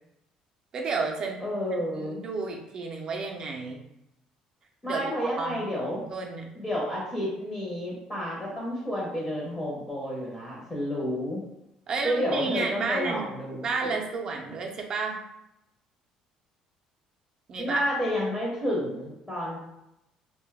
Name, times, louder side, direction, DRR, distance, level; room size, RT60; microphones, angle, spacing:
voice 1, 0.7-1.4 1.9-3.8 4.9-5.1 5.4-6.5 11.9-13.3 13.6-15.2 17.5-17.8, right 4 dB, 40° right, 1 dB, 0.5 m, -31 dB
voice 2, 1.4-2.2 4.8-6.0 6.5-11.4 12.0-13.9 17.6-19.6, equal, 15° left, -5 dB, 0.7 m, -30 dB
2.6 x 2.2 x 3.4 m, 0.85 s
cardioid pair, 140°, 2 cm